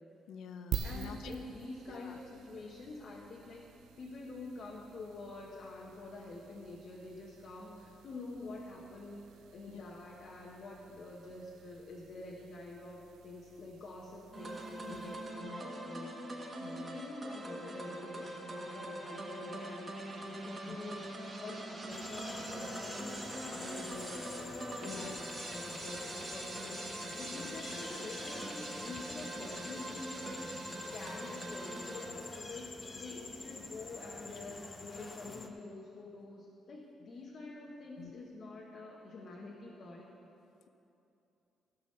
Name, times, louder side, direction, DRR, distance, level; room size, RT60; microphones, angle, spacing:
voice 1, 0.3-1.3 1.9-2.2 9.7-9.9 14.8-15.1 15.4-15.6 16.6-17.0 20.7-20.8 24.8-25.1 27.3-27.5 38.0-38.1, left 7 dB, 70° left, 8 dB, 0.7 m, -48 dB
sound 1, 0.7-15.4, right 8 dB, 90° right, 0.5 m, -48 dB
voice 2, 0.8-16.1 16.6-25.1 25.5-30.5 30.9-40.1, left 2 dB, 40° left, -3 dB, 1.1 m, -47 dB
sound 2, 14.3-32.1, right 1 dB, 25° right, 1.2 m, -43 dB
sound 3, 21.9-35.5, left 3 dB, 25° left, 0.6 m, -47 dB
15.0 x 6.2 x 6.6 m, 2.8 s
cardioid pair, 175°, 0 cm